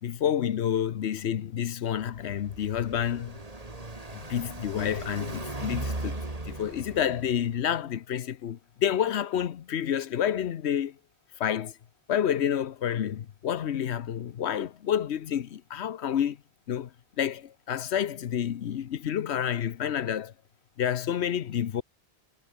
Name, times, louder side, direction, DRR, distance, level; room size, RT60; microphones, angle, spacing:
voice 1, 0.0-3.4 4.3-10.9 11.4-11.7 12.1-16.4 16.7-16.9 17.2-20.3 20.8-21.8, left 9 dB, 80° left, 1.1 m, -29 dB
Car passing by, 2.0-7.6, right 2 dB, 35° right, 2.8 m, -38 dB
omnidirectional pair, 1.1 m